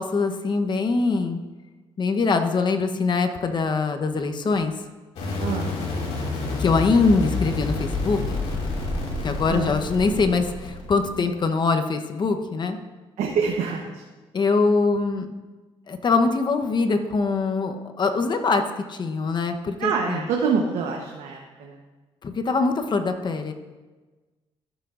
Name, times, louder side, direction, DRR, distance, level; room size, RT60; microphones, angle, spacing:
voice 1, 0.0-1.4 2.0-4.7 6.6-8.4 9.2-12.8 14.3-15.3 15.9-18.6 18.9-20.3 22.2-23.5, left 4 dB, 40° left, 6 dB, 0.9 m, -23 dB
sound 1, 5.2-11.3, left 3 dB, 70° left, 2.4 m, -28 dB
voice 2, 5.4-5.7 9.5-9.7 13.2-14.0 19.8-21.8, right 5 dB, 80° right, 0 dB, 1.1 m, -26 dB
14.5 x 6.9 x 2.5 m, 1.3 s
supercardioid pair, 75°, 11 cm